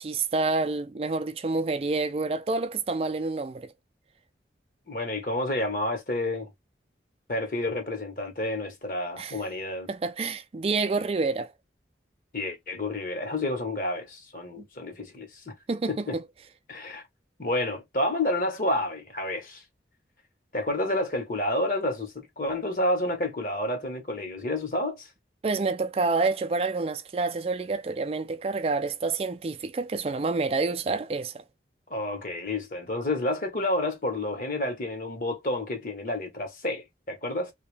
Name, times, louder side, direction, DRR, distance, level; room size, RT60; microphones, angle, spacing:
voice 1, 0.0-3.7 9.2-9.4 9.9-11.5 14.6-14.7 15.7-16.2 25.4-31.4, right 3 dB, 35° right, 0.4 m, -28 dB
voice 2, 4.9-6.5 7.3-9.9 12.3-15.5 15.9-16.2 16.7-17.0 17.4-19.6 20.5-25.1 31.9-37.5, left 1 dB, 50° left, 1.5 m, -30 dB
3.1 x 2.8 x 3.3 m
head